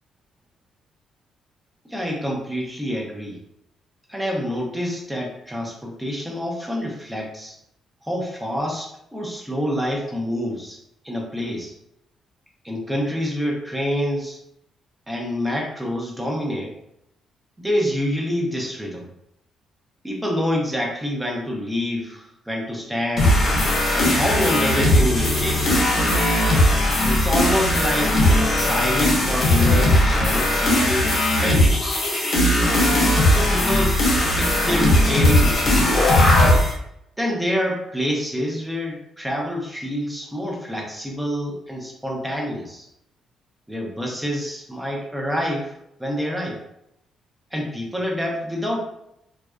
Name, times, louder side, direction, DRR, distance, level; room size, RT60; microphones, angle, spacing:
voice 1, 1.9-3.4 4.1-7.6 8.0-10.8 11.0-11.7 12.6-14.4 15.1-16.8 17.6-19.1 20.0-23.4 23.9-25.7 27.0-32.0 33.0-34.1 34.4-35.9 37.2-42.9 43.7-45.7 46.0-46.6 47.5-48.8, equal, 10° right, -1 dB, 0.6 m, -27 dB
sound 1, 23.2-36.7, left 1 dB, 50° left, 0.8 m, -18 dB
2.5 x 2.2 x 2.2 m, 0.79 s
cardioid pair, 90°, 0 cm